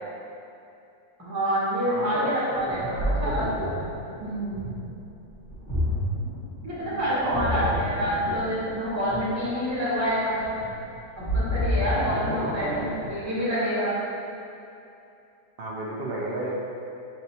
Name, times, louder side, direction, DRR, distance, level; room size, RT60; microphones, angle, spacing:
voice 1, 1.2-2.8 3.2-3.8 4.2-4.6 6.6-10.4 11.2-13.9, equal, 10° right, -10 dB, 1.0 m, -27 dB
voice 2, 1.8-3.7 6.8-7.8 12.4-12.9 15.6-16.6, right 1 dB, 55° right, -3 dB, 0.7 m, -32 dB
Ocean, 2.5-13.3, equal, 15° left, 1.2 m, -30 dB
5.8 x 3.2 x 2.8 m, 2.7 s
omnidirectional pair, 1.5 m